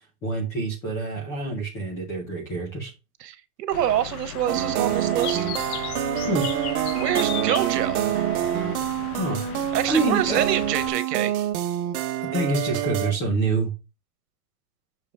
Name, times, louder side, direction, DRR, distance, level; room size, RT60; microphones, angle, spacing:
voice 1, 0.2-2.9 6.2-6.5 9.2-9.4 9.7-10.4 12.3-13.7, right 2 dB, 10° left, 0.3 m, -26 dB
voice 2, 3.2-5.5 7.0-8.0 9.7-11.4, right 11 dB, 85° right, 1.4 m, -26 dB
Bird, 3.7-10.9, left 9 dB, 65° left, 1.0 m, -36 dB
sound 1, 4.5-13.1, right 11 dB, 60° right, 1.3 m, -26 dB
6.8 x 4.9 x 3.4 m
supercardioid pair, 165°, 47 cm